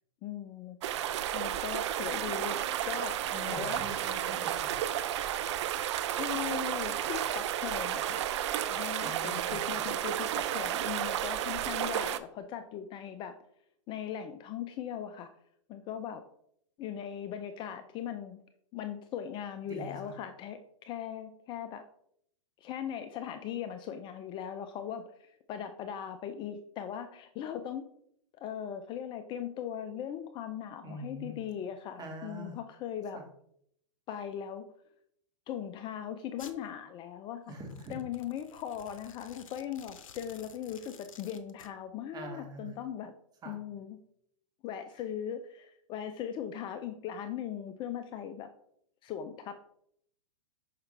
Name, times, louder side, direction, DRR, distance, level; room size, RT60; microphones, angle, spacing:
voice 1, 0.2-0.8 1.3-2.6 2.8-3.8 6.1-8.2 8.7-13.3 13.9-15.3 15.7-16.2 16.8-18.4 18.7-20.6 20.9-21.8 22.6-27.8 28.4-33.2 34.1-34.6 35.5-37.6 37.9-43.1 43.4-44.0 44.6-48.5 49.0-49.6, left 9 dB, 30° left, 8 dB, 0.4 m, -39 dB
sound 1, 0.8-12.2, right 11 dB, 60° right, 0.5 m, -32 dB
voice 2, 3.3-4.8 9.0-9.8 19.7-20.1 30.8-31.4 32.0-32.6 37.5-38.0 42.1-42.8 43.4-43.6, right 1 dB, 25° right, 2 dB, 1.8 m, -43 dB
Domestic sounds home sounds, 36.4-36.6 37.6-41.7, left 7 dB, 85° left, 0.7 m, -53 dB
5.7 x 5.6 x 3.3 m, 0.71 s
hypercardioid pair, 115°, 17 cm